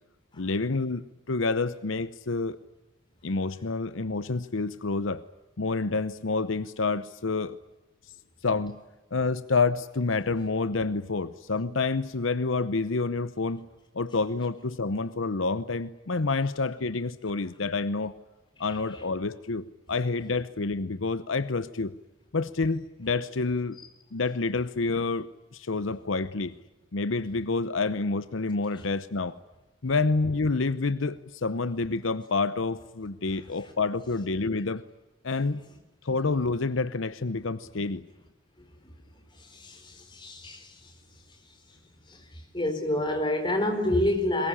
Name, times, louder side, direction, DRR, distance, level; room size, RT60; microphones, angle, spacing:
voice 1, 0.4-1.0 1.3-2.6 3.2-5.2 5.6-7.6 8.4-8.8 9.1-13.7 13.9-18.1 18.6-21.9 22.3-23.8 24.1-26.5 26.9-29.4 29.8-34.8 35.2-35.6 36.0-38.1, left 3 dB, 75° left, 14 dB, 0.8 m, -28 dB
voice 2, 39.5-40.8 42.1-42.2 42.5-44.5, left 1 dB, 25° left, 4 dB, 4.5 m, -27 dB
22.5 x 21.0 x 10.0 m, 1.1 s
head